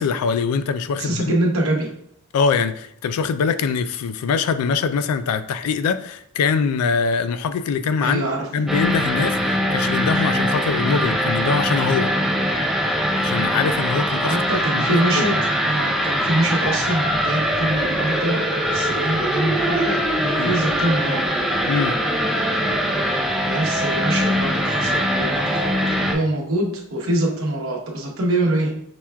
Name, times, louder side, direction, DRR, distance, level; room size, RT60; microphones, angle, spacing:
voice 1, 0.0-1.3 2.3-8.3 8.5-12.1 13.2-14.4 14.7-15.2 20.4-20.5 21.7-22.0, left 5 dB, 80° left, 13 dB, 0.3 m, -23 dB
voice 2, 1.0-2.0 8.0-8.5 14.3-21.3 23.4-28.8, right 1 dB, 65° right, -1 dB, 0.9 m, -24 dB
sound 1, 8.7-26.1, equal, ahead, 0.3 m, -22 dB
5.8 x 2.3 x 2.2 m, 0.69 s
head